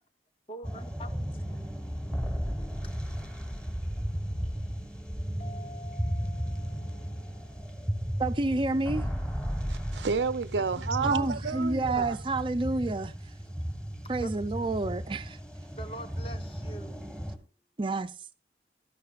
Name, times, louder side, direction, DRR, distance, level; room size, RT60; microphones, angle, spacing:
voice 1, 0.5-1.6 2.5-2.9 11.0-11.3 13.4-13.6 14.2-14.3 15.7-17.0, right 1 dB, 30° left, 1.1 m, -45 dB
sound 1, 0.6-17.4, equal, 5° left, 1.4 m, -35 dB
sound 2, 5.4-8.7, left 2 dB, 65° left, 1.3 m, -51 dB
voice 2, 8.2-9.1 11.0-13.3 14.1-15.4 17.8-18.3, right 2 dB, 30° right, 0.5 m, -29 dB
voice 3, 9.7-12.2, right 5 dB, 75° right, 0.6 m, -30 dB
17.0 x 13.0 x 2.4 m
head